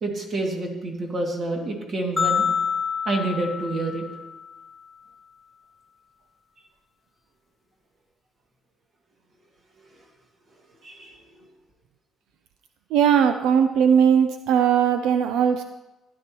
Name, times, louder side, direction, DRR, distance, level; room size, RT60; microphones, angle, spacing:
voice 1, 0.0-2.5 3.1-4.0 10.8-11.2, right 2 dB, 40° right, 0 dB, 2.2 m, -28 dB
sound 1, 2.2-4.5, left 6 dB, 15° left, 0.7 m, -27 dB
voice 2, 12.9-15.6, right 8 dB, 85° right, 8 dB, 0.5 m, -19 dB
15.5 x 11.5 x 3.0 m, 1.1 s
cardioid pair, 140°, 0 cm